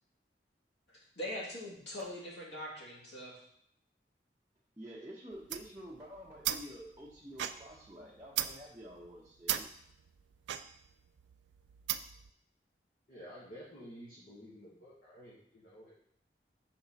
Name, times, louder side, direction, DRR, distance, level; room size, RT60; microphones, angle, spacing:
voice 1, 1.2-3.4, left 1 dB, 85° left, -5 dB, 2.4 m, -42 dB
voice 2, 4.8-9.7, equal, 15° right, -7 dB, 0.8 m, -49 dB
sound 1, 5.3-12.3, right 11 dB, 85° right, 0.4 m, -39 dB
voice 3, 13.1-15.9, equal, 45° left, -9 dB, 1.4 m, -51 dB
5.8 x 4.2 x 4.2 m, 0.71 s
head